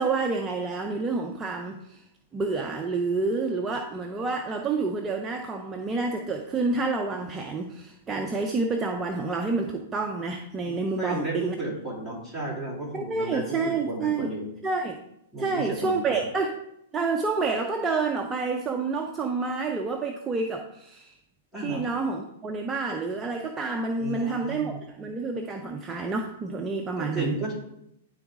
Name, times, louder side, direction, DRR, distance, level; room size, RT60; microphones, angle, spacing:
voice 1, 0.0-2.0 2.3-11.6 12.9-14.3 14.6-15.0 15.4-16.5 16.9-21.2 21.6-27.4, right 3 dB, 20° right, 2 dB, 0.6 m, -28 dB
voice 2, 10.6-14.5 15.3-16.2 21.5-21.8 24.0-24.8 27.0-27.6, right 2 dB, 5° left, -5 dB, 2.7 m, -33 dB
10.0 x 4.0 x 3.7 m, 0.79 s
hypercardioid pair, 125°, 0 cm